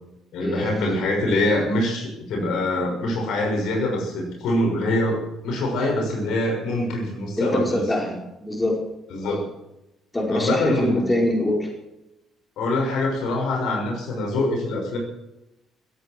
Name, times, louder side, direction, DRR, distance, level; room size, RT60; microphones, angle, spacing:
voice 1, 0.3-7.8 9.1-9.5 10.3-11.1 12.6-15.0, left 1 dB, 60° left, 1 dB, 6.3 m, -24 dB
voice 2, 7.4-8.8 10.1-11.7, left 1 dB, 15° left, 0 dB, 5.1 m, -24 dB
17.0 x 16.0 x 4.7 m, 0.91 s
figure-of-eight pair, 45°, 0 cm